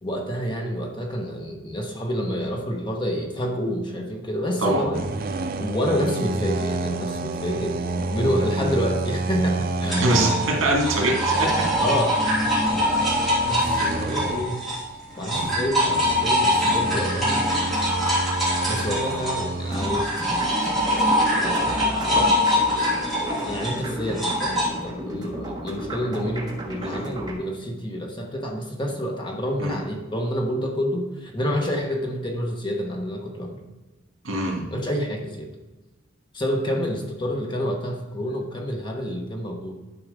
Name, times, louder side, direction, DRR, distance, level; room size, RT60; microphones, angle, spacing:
voice 1, 0.0-10.2 11.8-12.3 12.7-14.7 15.2-17.4 18.7-20.5 21.3-22.4 23.3-33.6 34.7-35.5 36.3-39.7, equal, 25° left, 2 dB, 1.2 m, -28 dB
sound 1, 4.9-14.7 15.2-19.9, right 3 dB, 45° right, 0.5 m, -30 dB
sound 2, 9.9-14.9 15.2-24.7, left 1 dB, ahead, 2.9 m, -23 dB
voice 2, 10.0-11.5 22.1-22.3 26.8-27.0 29.6-29.8 34.2-34.6, right 1 dB, 80° right, 0 dB, 2.2 m, -23 dB
sound 3, 19.7-27.3, right 1 dB, 20° right, 1.3 m, -34 dB
11.0 x 4.7 x 5.0 m, 1.1 s
head